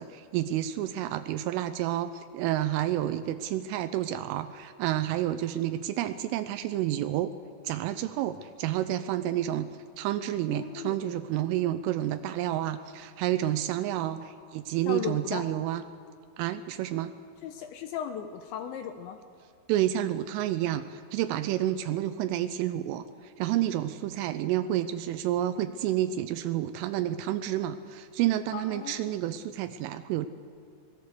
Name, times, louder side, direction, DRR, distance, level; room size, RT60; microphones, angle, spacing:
voice 1, 0.0-7.3 7.6-9.7 10.0-15.8 16.4-17.1 19.7-30.3, right 12 dB, 85° right, 9 dB, 3.2 m, -30 dB
voice 2, 10.5-11.0 14.9-15.4 17.4-19.2 28.5-29.2, left 9 dB, 80° left, 7 dB, 3.0 m, -36 dB
25.0 x 19.0 x 6.7 m, 2.4 s
omnidirectional pair, 5.7 m